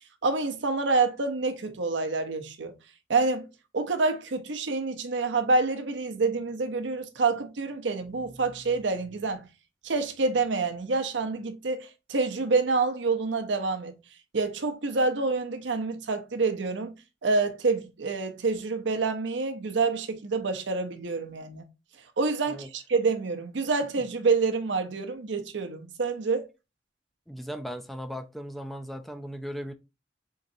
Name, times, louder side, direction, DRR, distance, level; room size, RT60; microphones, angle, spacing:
voice 1, 0.2-2.7 3.1-3.5 3.7-9.5 9.8-13.9 14.3-16.9 17.2-21.6 22.2-26.5, right 3 dB, 80° right, 0.7 m, -27 dB
voice 2, 27.3-29.7, equal, ahead, 0.3 m, -37 dB
4.0 x 3.7 x 2.6 m
head